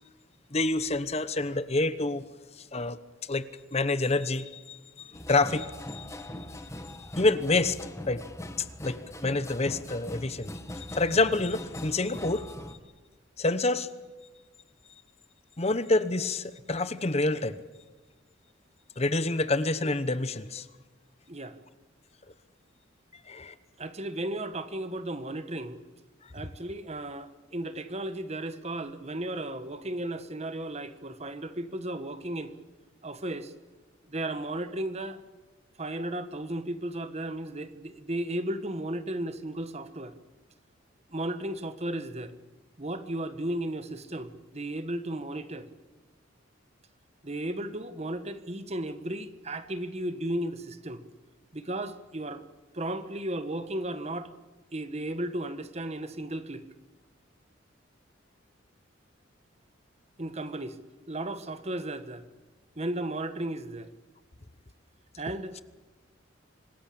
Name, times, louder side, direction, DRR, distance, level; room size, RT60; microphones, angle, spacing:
voice 1, 0.5-2.2 2.6-3.4 3.7-6.2 7.0-7.8 8.1-8.2 8.6-12.4 13.4-13.9 15.6-17.6 19.0-20.7 23.3-23.5, left 2 dB, 30° left, 13 dB, 1.0 m, -28 dB
sound 1, 5.1-12.8, left 1 dB, 15° left, 1.5 m, -41 dB
voice 2, 23.8-25.8 26.3-32.5 33.0-33.5 34.1-35.2 35.8-40.1 41.1-42.3 42.8-45.7 47.2-51.0 51.5-52.4 52.7-54.3 54.7-56.6 60.2-60.8 61.1-62.3 62.7-63.9 65.2-65.6, right 1 dB, 35° right, 11 dB, 1.4 m, -34 dB
26.0 x 19.5 x 8.7 m, 1.2 s
head